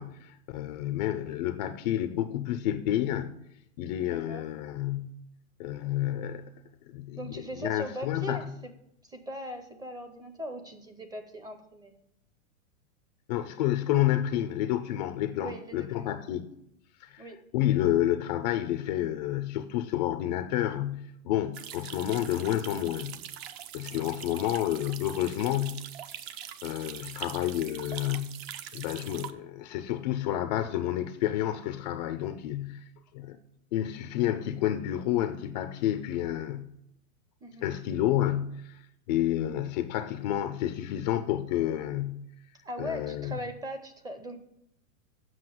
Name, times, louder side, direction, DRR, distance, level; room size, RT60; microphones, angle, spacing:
voice 1, 0.0-3.3 3.8-5.1 5.6-6.5 6.9-8.4 13.3-16.5 17.0-17.2 17.5-23.2 23.7-25.9 26.6-28.4 28.7-32.9 33.1-33.4 33.7-36.7 37.6-42.3 42.8-43.3, left 12 dB, 30° left, 0.4 m, -30 dB
voice 2, 4.0-4.5 7.2-8.7 9.0-11.9 15.4-16.2 17.2-17.4 23.9-24.2 37.4-37.7 42.6-44.4, equal, 10° right, 0.6 m, -40 dB
sound 1, 21.5-29.3, right 10 dB, 45° right, 0.8 m, -43 dB
7.8 x 5.9 x 7.6 m
hypercardioid pair, 135°, 42 cm